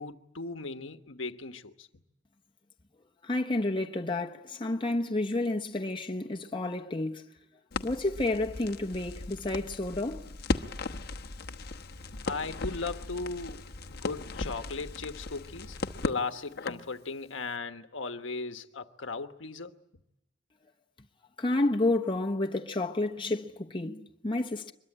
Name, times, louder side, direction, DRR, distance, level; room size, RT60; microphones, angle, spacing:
voice 1, 0.0-1.9 12.3-15.8 16.0-19.7, left 4 dB, 75° left, 1.3 m, -37 dB
voice 2, 3.2-7.3 7.8-10.3 21.4-24.7, left 2 dB, 25° left, 1.1 m, -30 dB
Crackle, 7.7-16.9, left 3 dB, 55° left, 1.1 m, -37 dB
24.0 x 22.0 x 8.8 m
head